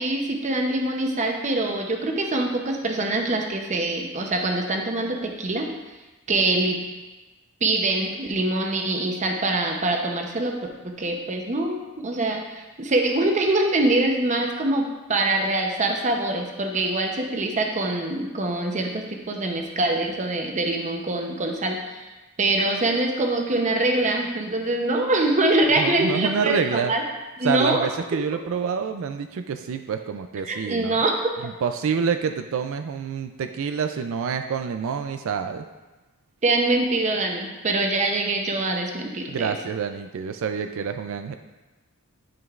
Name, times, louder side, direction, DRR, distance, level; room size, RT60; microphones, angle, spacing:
voice 1, 0.0-5.7 6.3-6.8 7.6-10.5 10.8-22.1 22.4-27.0 27.4-27.9 28.1-28.2 30.4-31.2 36.4-39.5, right 2 dB, 35° right, 2 dB, 0.7 m, -24 dB
voice 2, 25.8-26.9 27.4-31.0 31.4-35.7 39.3-41.4, right 6 dB, 65° right, 7 dB, 0.4 m, -27 dB
11.0 x 5.2 x 2.4 m, 1.1 s
head